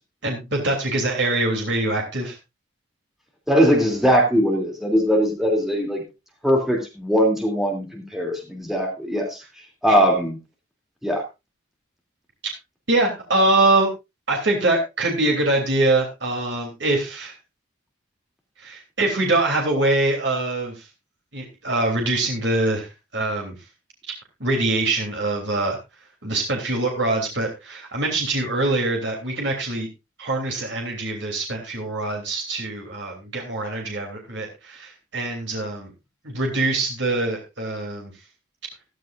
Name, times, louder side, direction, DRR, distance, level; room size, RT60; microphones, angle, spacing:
voice 1, 0.2-2.4 12.9-13.9 14.3-17.3 18.6-20.9 21.3-23.6 24.4-25.8 26.2-29.9 30.2-35.9 36.2-38.1, right 2 dB, 60° right, 1 dB, 3.1 m, -23 dB
voice 2, 3.5-6.0 6.4-9.4 9.8-10.4 11.0-11.2, equal, ahead, 1 dB, 2.8 m, -20 dB
14.5 x 13.5 x 2.5 m, 0.25 s
head